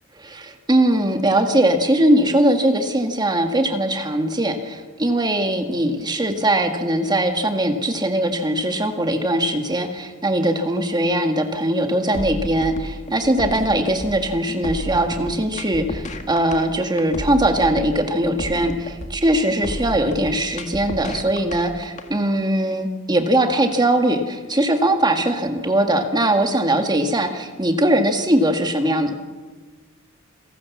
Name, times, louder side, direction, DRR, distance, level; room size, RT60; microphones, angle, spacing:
voice 1, 0.2-29.1, right 1 dB, 20° right, 5 dB, 1.9 m, -20 dB
sound 1, 12.1-22.1, left 1 dB, 35° left, 1.8 m, -31 dB
28.0 x 17.5 x 7.3 m, 1.5 s
head